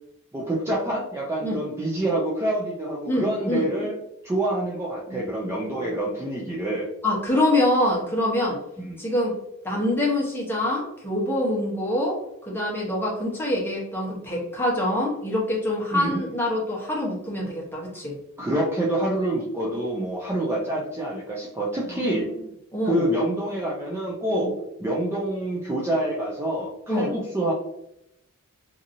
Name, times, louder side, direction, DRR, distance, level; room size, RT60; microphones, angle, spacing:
voice 1, 0.3-3.9 4.2-6.9 8.8-9.0 15.9-16.2 18.4-22.3 22.8-24.5 24.8-27.5, right 1 dB, 10° right, -5 dB, 0.4 m, -27 dB
voice 2, 3.1-3.7 5.1-5.2 5.7-5.9 7.0-8.6 9.0-9.4 9.6-12.2 12.5-18.2 21.9-22.3 22.7-23.0 24.4-24.5 26.9-27.1, left 1 dB, 10° left, -4 dB, 0.9 m, -25 dB
2.8 x 2.6 x 2.5 m, 0.83 s
head